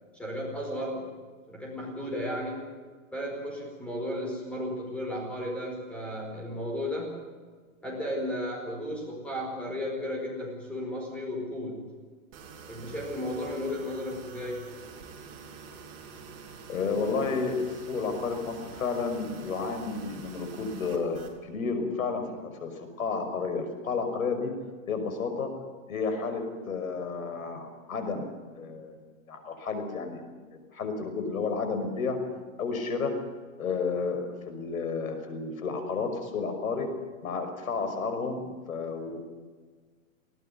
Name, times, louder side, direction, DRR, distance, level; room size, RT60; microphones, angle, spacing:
voice 1, 0.1-1.1 1.5-2.6 3.1-7.2 7.8-11.9 12.7-14.7, left 1 dB, 5° left, -2 dB, 4.8 m, -34 dB
sound 1, 12.3-21.3, right 5 dB, 40° right, 4.9 m, -46 dB
voice 2, 16.7-22.7 23.0-24.5 24.9-25.5 25.9-28.3 28.5-29.0 29.3-30.2 30.5-32.2 32.6-33.1 33.6-36.9 37.2-39.3, left 4 dB, 80° left, 7 dB, 5.8 m, -31 dB
20.0 x 18.0 x 9.5 m, 1.5 s
hypercardioid pair, 170°, 41 cm